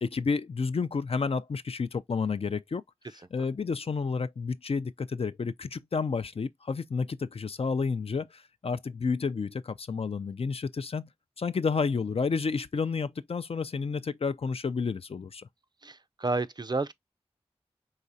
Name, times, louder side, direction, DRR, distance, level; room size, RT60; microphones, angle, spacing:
voice 1, 0.0-11.1 11.4-15.5, left 5 dB, 65° left, 0.4 m, -31 dB
voice 2, 15.8-16.9, right 3 dB, 40° right, 0.4 m, -30 dB
4.9 x 3.2 x 2.7 m
wide cardioid pair, 45°, 11 cm